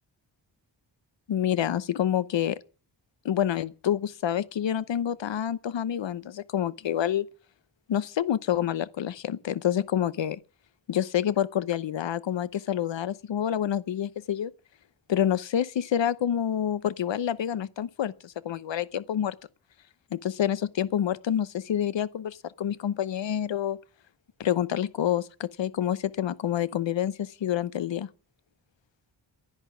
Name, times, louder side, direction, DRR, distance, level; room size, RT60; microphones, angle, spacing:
voice 1, 1.3-2.6 3.2-7.3 7.9-10.4 10.9-14.5 15.1-19.4 20.1-23.8 24.4-28.1, left 10 dB, 80° left, 0.9 m, -28 dB
11.0 x 10.5 x 9.2 m
wide cardioid pair, 160°, 44 cm